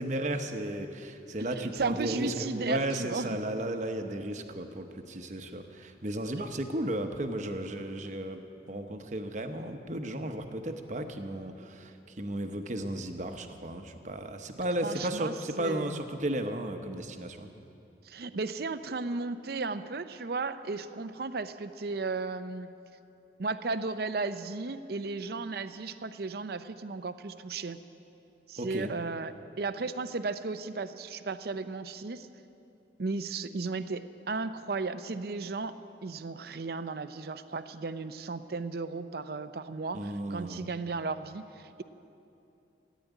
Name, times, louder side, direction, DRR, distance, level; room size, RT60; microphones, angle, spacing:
voice 1, 0.0-17.5 28.6-28.9 39.9-40.6, right 1 dB, 40° right, 6 dB, 0.9 m, -34 dB
voice 2, 1.4-3.3 14.8-16.0 18.0-22.7 23.4-27.8 28.5-29.3 29.6-32.3 33.0-35.7 36.0-41.8, right 3 dB, 55° right, 12 dB, 0.5 m, -35 dB
14.5 x 9.3 x 9.3 m, 2.8 s
head